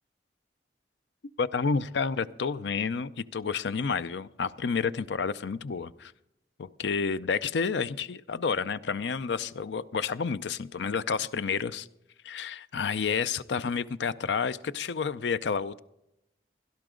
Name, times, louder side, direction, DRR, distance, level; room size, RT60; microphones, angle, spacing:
voice 1, 1.4-6.1 6.6-11.9 12.2-15.8, left 5 dB, 85° left, 15 dB, 0.5 m, -30 dB
17.0 x 12.0 x 3.8 m, 0.86 s
head